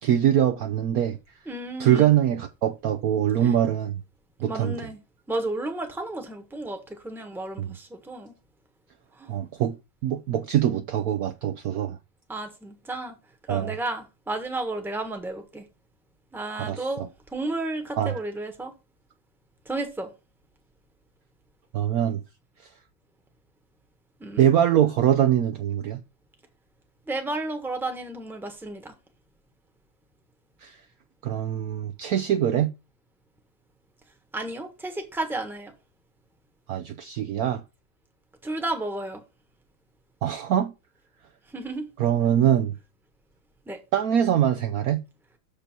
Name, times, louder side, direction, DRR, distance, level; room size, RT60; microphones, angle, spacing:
voice 1, 0.0-1.2 1.8-4.0 4.4-4.8 7.6-7.8 9.3-9.7 10.0-12.0 13.5-13.8 16.6-17.1 18.0-18.2 21.7-22.2 24.4-26.0 30.6-30.8 31.2-32.7 36.7-37.6 40.2-40.7 42.0-42.7 43.9-45.0, right 10 dB, 80° right, 0.8 m, -23 dB
voice 2, 1.5-2.1 3.4-3.5 4.5-5.0 5.3-6.8 7.0-8.3 9.2-9.3 12.3-13.2 13.5-15.6 16.3-18.7 19.7-20.1 24.2-24.5 27.1-28.9 34.3-35.7 38.4-39.2 41.5-41.9 43.7-43.8, right 2 dB, ahead, 1.0 m, -32 dB
6.8 x 5.2 x 6.0 m
omnidirectional pair, 2.2 m